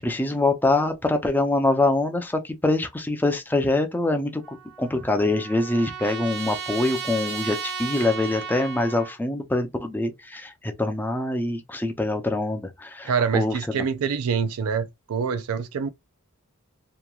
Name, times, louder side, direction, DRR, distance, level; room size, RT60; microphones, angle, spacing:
voice 1, 0.0-13.8, left 2 dB, 10° left, 0.4 m, -24 dB
Trumpet, 4.4-9.2, right 6 dB, 50° right, 0.6 m, -35 dB
voice 2, 13.0-15.9, right 6 dB, 90° right, 0.4 m, -25 dB
2.9 x 2.2 x 2.3 m
head